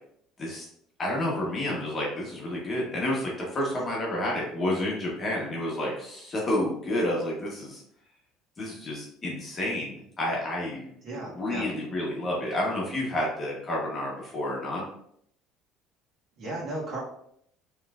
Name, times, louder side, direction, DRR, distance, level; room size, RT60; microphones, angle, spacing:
voice 1, 1.0-7.8 8.6-10.9 11.2-14.8, left 1 dB, 25° left, -3 dB, 1.1 m, -30 dB
voice 2, 11.0-11.7 16.4-17.0, right 2 dB, 40° right, -5 dB, 1.7 m, -35 dB
5.4 x 3.2 x 2.4 m, 0.70 s
cardioid pair, 150°, 0 cm